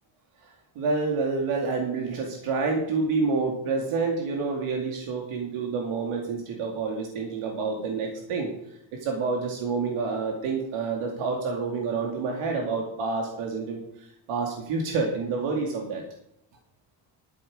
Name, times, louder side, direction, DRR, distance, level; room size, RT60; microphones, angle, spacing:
voice 1, 0.4-8.5 9.0-16.0, right 4 dB, 90° right, 0 dB, 2.6 m, -28 dB
12.5 x 9.3 x 5.0 m, 0.74 s
cardioid pair, 160°, 50 cm